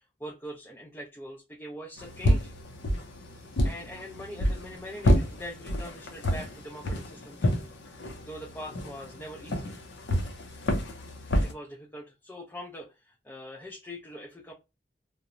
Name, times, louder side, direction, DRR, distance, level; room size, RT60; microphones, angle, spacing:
voice 1, 0.0-2.5 3.6-7.5 8.2-9.8 11.4-14.5, equal, 10° left, -1 dB, 0.4 m, -43 dB
sound 1, 2.0-11.5, equal, 75° left, 0.5 m, -29 dB
2.8 x 2.0 x 2.5 m, 0.26 s
head